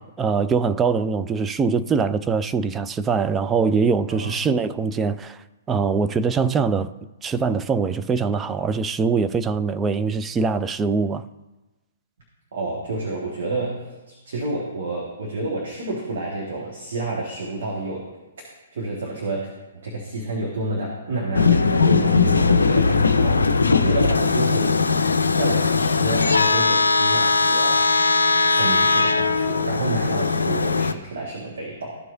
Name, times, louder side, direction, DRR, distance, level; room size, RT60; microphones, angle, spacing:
voice 1, 0.2-5.4 5.7-6.9 7.2-11.2, right 5 dB, 15° right, 0.3 m, -22 dB
voice 2, 12.5-18.1 18.7-19.5 19.8-24.8 25.3-28.0 28.4-32.0, right 2 dB, 60° right, 1.6 m, -29 dB
sound 1, 21.3-30.9, left 4 dB, 75° left, 0.5 m, -19 dB
14.0 x 4.7 x 2.6 m
figure-of-eight pair, 120°, 0 cm